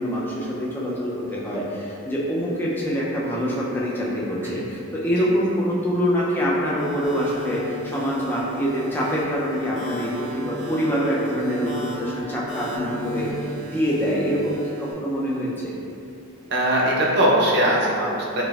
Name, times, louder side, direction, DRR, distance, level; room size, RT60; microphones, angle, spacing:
voice 1, 0.0-15.7, equal, 10° left, -6 dB, 0.4 m, -25 dB
sound 1, 6.8-14.9, right 1 dB, 30° left, 0.9 m, -36 dB
voice 2, 16.5-18.4, right 1 dB, 50° right, -4 dB, 0.6 m, -21 dB
5.0 x 2.5 x 2.3 m, 2.8 s
head